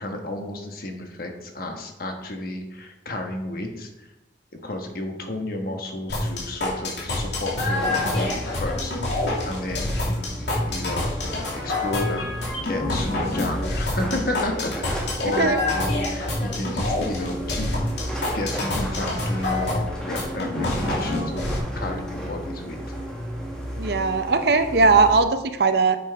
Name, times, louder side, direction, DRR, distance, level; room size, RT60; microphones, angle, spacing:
voice 1, 0.0-4.1 4.5-12.3 12.6-17.7 18.3-21.5 21.7-22.8, left 2 dB, 50° left, 3 dB, 1.2 m, -32 dB
sound 1, 6.1-21.6, left 2 dB, 70° left, 2.5 m, -27 dB
sound 2, 7.7-25.2, equal, 5° left, 1.3 m, -33 dB
voice 2, 15.2-15.6 23.8-26.0, right 4 dB, 60° right, 9 dB, 0.6 m, -19 dB
8.4 x 5.8 x 4.7 m, 0.96 s
head